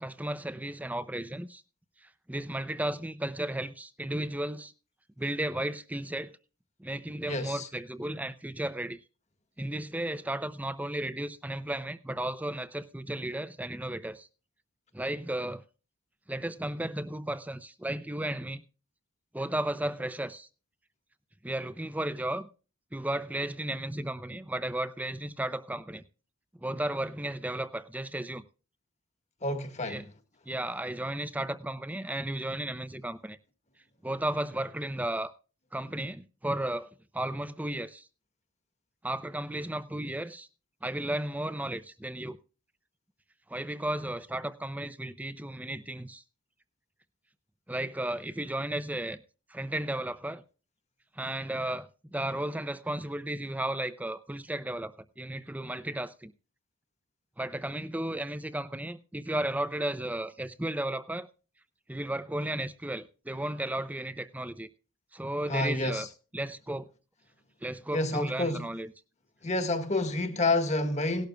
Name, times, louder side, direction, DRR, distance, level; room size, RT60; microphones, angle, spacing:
voice 1, 0.0-1.6 2.0-4.7 5.2-6.4 6.8-9.0 9.6-14.3 14.9-15.6 16.3-18.6 19.3-20.5 21.4-22.5 22.9-26.0 26.6-28.4 29.9-30.0 30.5-33.4 34.0-35.3 35.7-38.1 39.0-40.5 40.8-42.4 43.5-46.2 47.7-49.2 49.5-50.4 51.2-56.3 57.4-61.3 61.9-64.7 65.1-66.1 66.3-66.9 67.6-68.9, right 1 dB, 10° right, 0.5 m, -34 dB
voice 2, 7.2-7.7 29.4-30.1 65.5-66.1 67.9-68.6 69.4-71.3, left 2 dB, 35° left, 1.5 m, -29 dB
18.0 x 12.0 x 2.3 m
head